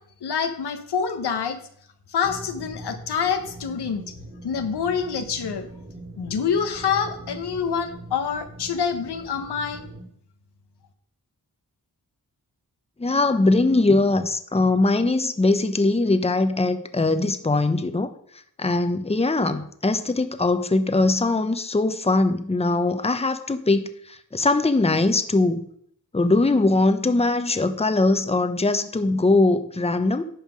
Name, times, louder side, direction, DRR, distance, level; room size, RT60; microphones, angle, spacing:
voice 1, 0.2-1.6 2.1-4.0 4.4-5.7 6.2-9.9, left 6 dB, 90° left, 6 dB, 1.1 m, -26 dB
sound 1, 2.2-10.0, right 1 dB, 30° right, 2.7 m, -42 dB
voice 2, 13.0-18.1 18.6-25.6 26.1-30.2, left 2 dB, 15° left, 9 dB, 0.8 m, -21 dB
11.0 x 5.7 x 5.1 m, 0.67 s
cardioid pair, 55°, 39 cm